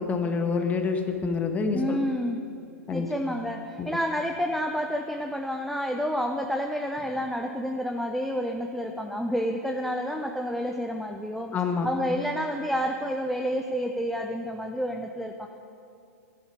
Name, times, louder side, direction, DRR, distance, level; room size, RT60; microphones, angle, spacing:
voice 1, 0.0-2.0 2.9-3.1 3.8-3.9 11.5-11.9, left 4 dB, 15° left, 6 dB, 1.5 m, -27 dB
voice 2, 1.7-2.4 2.9-11.5 11.8-15.5, equal, ahead, 4 dB, 0.6 m, -29 dB
12.0 x 11.0 x 9.5 m, 2.5 s
figure-of-eight pair, 105°, 8 cm